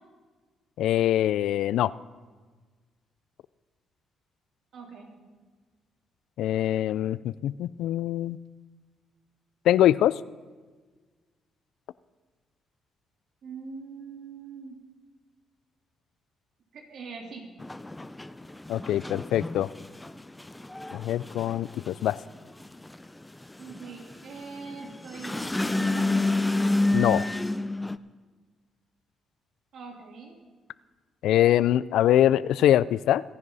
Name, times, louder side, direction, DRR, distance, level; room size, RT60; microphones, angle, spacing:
voice 1, 0.8-1.9 6.4-8.4 9.7-10.2 18.7-19.7 20.9-22.2 26.9-27.3 31.2-33.2, left 12 dB, 80° left, 19 dB, 0.3 m, -23 dB
voice 2, 4.7-5.1 13.4-14.8 16.7-17.5 23.6-26.1 29.7-30.4, right 5 dB, 65° right, 0 dB, 3.5 m, -43 dB
sound 1, 17.6-28.0, left 2 dB, 10° left, 0.5 m, -29 dB
25.0 x 10.5 x 4.1 m, 1.4 s
cardioid pair, 90°, 0 cm